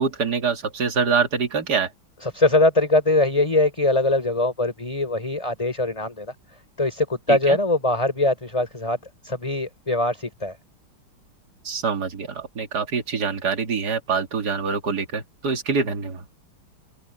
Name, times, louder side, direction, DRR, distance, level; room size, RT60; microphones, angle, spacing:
voice 1, 0.0-1.9 7.3-7.6 11.6-16.2, right 5 dB, 50° right, 2.6 m, -25 dB
voice 2, 2.2-6.3 6.8-9.0 9.2-10.5, left 2 dB, 15° left, 5.0 m, -22 dB
omnidirectional pair, 2.4 m